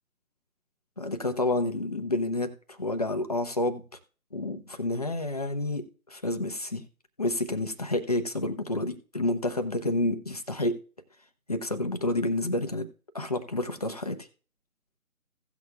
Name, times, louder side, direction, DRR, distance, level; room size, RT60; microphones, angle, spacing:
voice 1, 1.0-3.8 4.3-6.8 7.2-10.8 11.5-12.9 13.1-14.2, left 1 dB, 25° left, 0.7 m, -29 dB
16.5 x 6.3 x 2.3 m
figure-of-eight pair, 160°, 43 cm